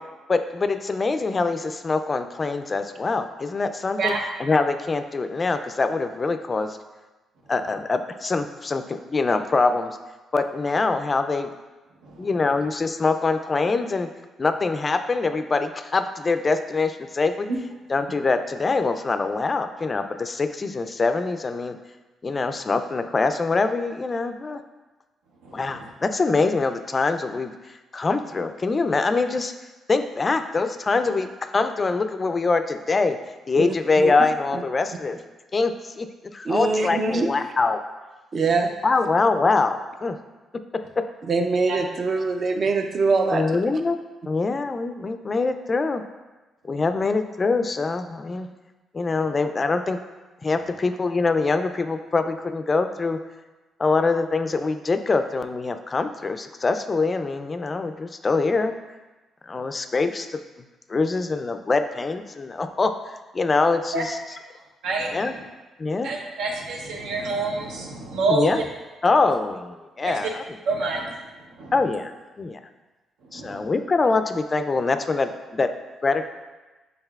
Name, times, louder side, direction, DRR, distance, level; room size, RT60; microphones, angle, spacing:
voice 1, 0.3-6.8 7.5-10.0 10.3-11.5 12.2-14.1 14.4-17.5 17.9-21.8 22.2-24.6 25.5-27.5 27.9-29.5 29.9-31.3 31.5-33.2 33.5-35.2 35.5-36.1 36.3-37.8 38.8-40.2 41.0-41.1 43.3-44.0 44.3-46.0 46.6-48.5 48.9-50.0 50.4-53.2 53.8-58.7 59.4-60.4 60.9-64.2 65.1-65.4 65.8-66.1 68.3-68.6 69.0-70.6 71.7-72.1 72.4-72.6 73.3-75.7 76.0-76.3, left 3 dB, 30° left, 8 dB, 0.3 m, -24 dB
voice 2, 33.6-34.1 36.5-37.3 38.3-38.7 41.3-43.4, right 3 dB, 45° right, 5 dB, 0.4 m, -23 dB
voice 3, 64.8-65.2 66.0-68.5 70.1-70.2 70.7-71.1 71.6-71.7 73.3-73.7, right 3 dB, 85° right, 0 dB, 0.7 m, -26 dB
5.5 x 3.8 x 2.3 m, 1.2 s
cardioid pair, 90°, 0 cm